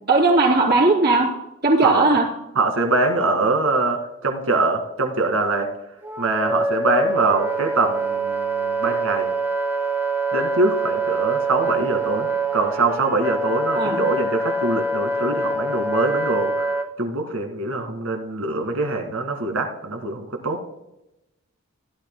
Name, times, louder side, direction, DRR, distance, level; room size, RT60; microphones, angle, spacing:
voice 1, 0.1-1.3 1.6-2.2 13.7-14.0, right 3 dB, 50° right, -2 dB, 3.2 m, -17 dB
voice 2, 1.8-2.2 2.6-5.7 6.2-9.3 10.3-20.6, right 2 dB, 90° right, 3 dB, 2.0 m, -23 dB
Wind instrument woodwind instrument, 6.0-16.9, right 2 dB, 10° right, 0.6 m, -25 dB
16.0 x 11.5 x 2.2 m, 0.89 s
head